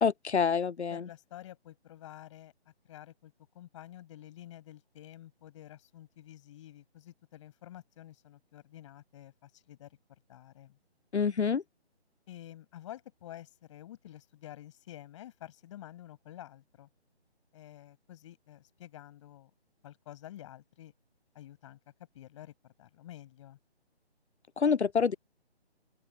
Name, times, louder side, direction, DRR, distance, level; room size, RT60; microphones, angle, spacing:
voice 1, 0.0-1.1 11.1-11.6 24.6-25.1, left 6 dB, 80° left, 0.7 m, -27 dB
voice 2, 0.9-2.5 2.8-9.9 10.3-10.8 12.3-16.9 17.5-19.5 19.8-20.9 21.3-21.8 22.1-23.6, left 13 dB, 30° left, 7.8 m, -50 dB
open air
figure-of-eight pair, 150°, 33 cm